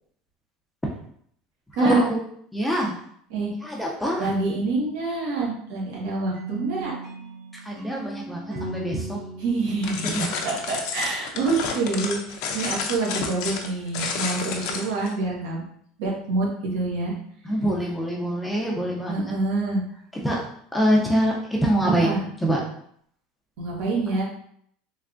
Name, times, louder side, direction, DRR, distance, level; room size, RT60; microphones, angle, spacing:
voice 1, 1.8-2.2 2.5-2.9 3.6-4.3 7.6-9.2 10.0-10.3 17.4-19.3 20.2-20.4 20.7-22.6, right 1 dB, 5° left, -2 dB, 0.5 m, -24 dB
voice 2, 4.2-6.9 9.4-15.6 16.0-17.1 19.1-19.8 21.8-22.2 23.6-24.2, right 3 dB, 75° right, -3 dB, 1.4 m, -27 dB
sound 1, 6.3-11.2, right 2 dB, 55° right, 1.0 m, -38 dB
sound 2, 9.8-15.1, left 5 dB, 60° left, 0.5 m, -30 dB
3.3 x 3.3 x 2.5 m, 0.66 s
cardioid pair, 165°, 0 cm